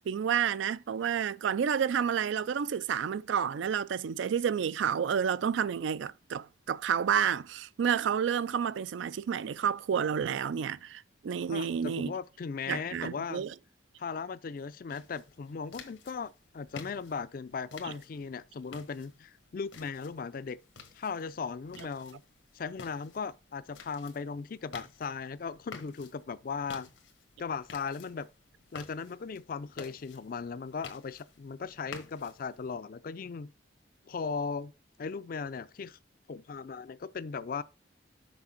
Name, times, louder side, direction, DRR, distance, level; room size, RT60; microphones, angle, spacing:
voice 1, 0.0-12.1 12.7-13.5 17.8-17.9, right 7 dB, 80° right, 0.4 m, -30 dB
voice 2, 11.5-13.4 14.0-20.6 20.9-22.2 22.5-26.9 27.4-28.3 28.7-33.5 34.1-34.7 35.0-36.0 36.3-37.6, left 5 dB, 50° left, 0.4 m, -37 dB
sound 1, 14.9-32.7, left 5 dB, 90° left, 1.3 m, -52 dB
6.1 x 5.0 x 5.7 m
head